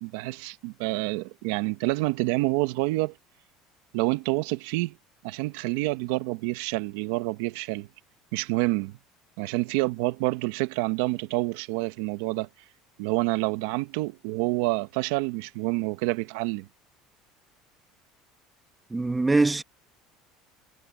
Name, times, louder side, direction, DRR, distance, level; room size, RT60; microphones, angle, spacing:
voice 1, 0.0-3.1 3.9-5.0 5.2-7.9 8.3-8.9 9.4-12.5 13.0-16.7, right 20 dB, 80° right, 1.1 m, -28 dB
voice 2, 18.9-19.6, right 3 dB, 15° right, 1.4 m, -22 dB
supercardioid pair, 125°, 0 cm